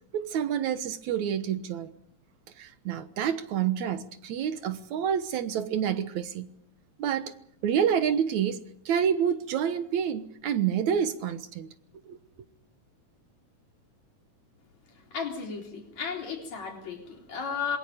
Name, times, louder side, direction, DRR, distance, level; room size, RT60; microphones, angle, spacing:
voice 1, 0.1-1.9 2.6-6.5 7.0-7.3 7.6-8.6 8.9-11.7 12.1-12.2, right 8 dB, 70° right, 2.4 m, -28 dB
voice 2, 14.9-17.8, left 6 dB, 60° left, 5.1 m, -34 dB
26.5 x 22.5 x 5.2 m
omnidirectional pair, 3.6 m